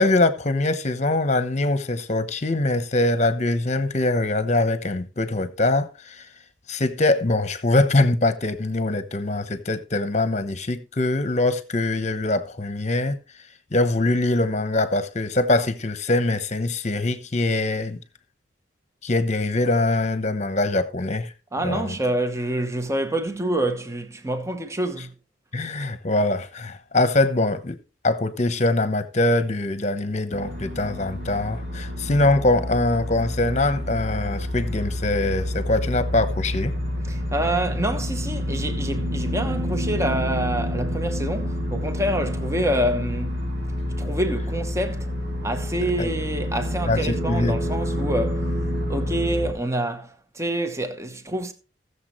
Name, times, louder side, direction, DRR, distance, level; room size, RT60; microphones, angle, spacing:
voice 1, 0.0-6.3 6.7-13.2 13.7-18.0 19.0-21.3 21.6-22.0 25.5-27.8 28.0-36.7 46.0-46.1 46.8-47.6, left 2 dB, 35° left, 1.0 m, -23 dB
voice 2, 21.5-25.1 37.1-43.4 44.0-45.1 45.4-48.5 48.9-51.5, right 1 dB, 15° right, 1.0 m, -27 dB
sound 1, 30.3-49.5, equal, 55° right, 2.8 m, -28 dB
19.0 x 7.0 x 3.2 m
head